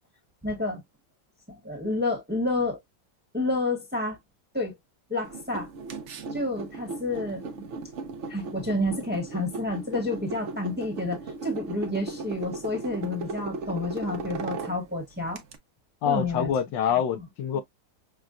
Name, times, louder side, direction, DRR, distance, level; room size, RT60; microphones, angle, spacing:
voice 1, 0.4-0.8 1.5-2.8 3.3-4.2 4.5-4.8 5.1-5.7 6.3-7.7 8.3-15.4 16.0-16.5 17.5-17.6, left 2 dB, 5° right, 1.0 m, -29 dB
sound 1, 5.2-15.6, right 3 dB, 60° right, 0.8 m, -37 dB
voice 2, 16.0-17.6, left 8 dB, 75° left, 1.3 m, -26 dB
6.1 x 2.3 x 2.4 m
omnidirectional pair, 2.1 m